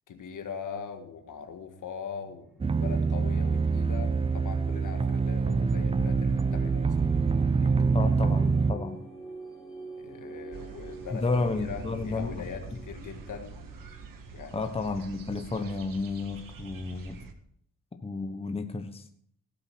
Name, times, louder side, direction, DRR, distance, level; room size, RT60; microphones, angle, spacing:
voice 1, 0.1-2.5 2.8-7.1 7.4-7.8 10.0-11.2 11.6-13.6 14.3-14.8, left 6 dB, 65° left, 6 dB, 1.7 m, -41 dB
sound 1, 2.2-15.7, right 2 dB, ahead, 3.3 m, -46 dB
sound 2, 2.6-8.8, right 4 dB, 20° right, 0.4 m, -25 dB
voice 2, 7.9-9.0 11.1-12.3 14.5-17.2 18.0-19.0, left 3 dB, 20° left, 5 dB, 1.1 m, -31 dB
sound 3, 10.5-17.3, right 5 dB, 80° right, 1.6 m, -46 dB
17.0 x 7.7 x 4.6 m, 0.66 s
cardioid pair, 120°, 33 cm